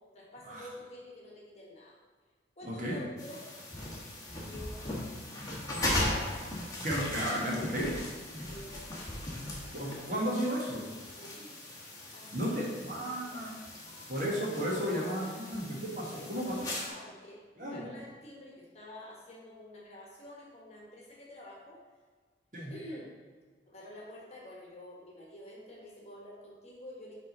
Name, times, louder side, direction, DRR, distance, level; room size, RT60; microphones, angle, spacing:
voice 1, 0.1-2.0 2.6-3.5 4.3-5.2 8.4-9.2 11.2-11.6 12.1-12.7 13.0-13.4 14.6-15.4 16.1-21.8 22.7-23.1 23.7-27.1, left 1 dB, 35° left, -3 dB, 1.3 m, -49 dB
voice 2, 2.6-3.0 6.8-8.0 9.7-10.9 12.3-13.5 14.1-16.7 17.6-17.9 22.5-22.7, equal, 45° right, -4 dB, 1.4 m, -33 dB
sound 1, 3.2-16.9, left 1 dB, 20° left, 1.1 m, -38 dB
5.4 x 3.7 x 5.3 m, 1.5 s
head